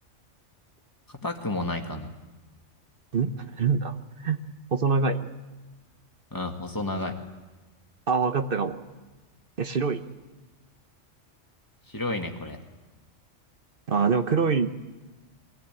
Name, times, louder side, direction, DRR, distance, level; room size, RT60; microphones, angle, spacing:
voice 1, 1.1-2.1 6.3-7.1 11.9-12.6, left 2 dB, 15° left, 3 dB, 1.9 m, -31 dB
voice 2, 3.1-4.4 4.7-5.3 8.1-8.8 9.6-10.0 13.9-14.9, right 5 dB, 50° right, 9 dB, 1.1 m, -25 dB
23.0 x 16.0 x 9.0 m, 1.2 s
omnidirectional pair, 1.3 m